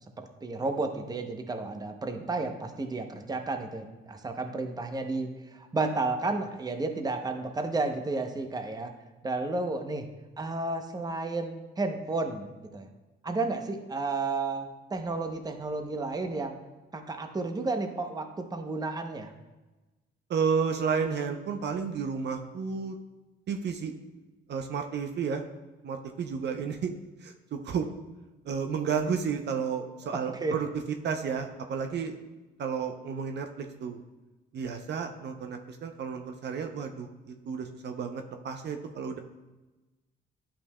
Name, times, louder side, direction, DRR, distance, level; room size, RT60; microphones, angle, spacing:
voice 1, 0.2-8.9 9.2-10.1 10.4-12.5 12.7-12.9 13.2-16.6 16.9-19.3 30.3-30.5, right 3 dB, 20° right, 6 dB, 0.7 m, -32 dB
voice 2, 20.3-23.0 23.5-23.9 24.5-25.4 25.8-26.9 27.2-27.9 28.5-32.2 32.6-34.0 34.5-39.2, right 6 dB, 60° right, 5 dB, 0.6 m, -32 dB
11.0 x 5.7 x 2.2 m, 1.1 s
cardioid pair, 90°, 20 cm